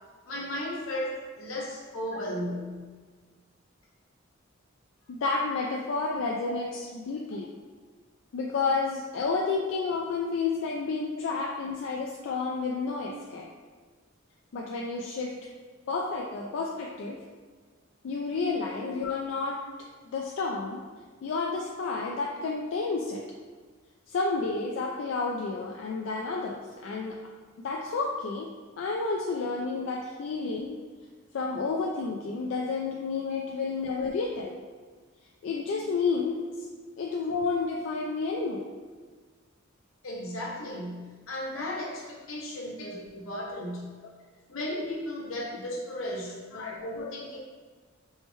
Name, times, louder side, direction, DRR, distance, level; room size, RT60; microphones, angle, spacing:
voice 1, 0.2-2.8 33.2-33.4 34.0-34.1 40.0-43.9 44.5-47.4, left 1 dB, 85° left, -3 dB, 0.8 m, -35 dB
voice 2, 5.1-6.7 6.9-7.5 8.3-13.5 14.5-15.3 15.9-17.2 18.0-19.6 20.1-20.8 21.2-23.2 24.1-27.2 27.6-28.5 28.8-30.8 31.3-34.6 35.4-36.4 37.0-38.6 46.5-46.7, left 4 dB, 70° left, -1 dB, 0.3 m, -30 dB
4.5 x 2.2 x 3.0 m, 1.5 s
head